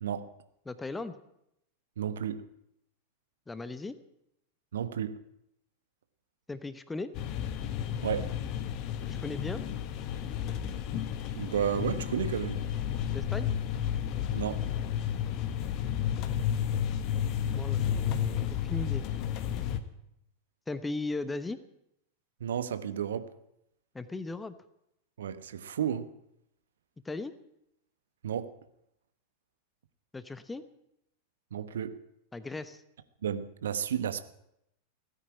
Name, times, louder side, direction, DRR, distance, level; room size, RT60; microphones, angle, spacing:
voice 1, 0.0-0.3 2.0-2.4 4.7-5.2 8.0-8.3 11.4-12.6 14.3-14.7 22.4-23.3 25.2-26.1 28.2-28.5 31.5-32.0 33.2-34.2, right 9 dB, 65° right, 1.1 m, -32 dB
voice 2, 0.7-1.2 3.5-3.9 6.5-7.1 9.0-9.6 13.1-13.6 17.6-19.1 20.7-21.6 23.9-24.5 27.0-27.3 30.1-30.6 32.3-32.8, left 3 dB, 10° left, 1.0 m, -37 dB
sound 1, 7.1-19.8, left 9 dB, 40° left, 1.3 m, -32 dB
17.0 x 9.8 x 8.6 m
figure-of-eight pair, 90°, 0 cm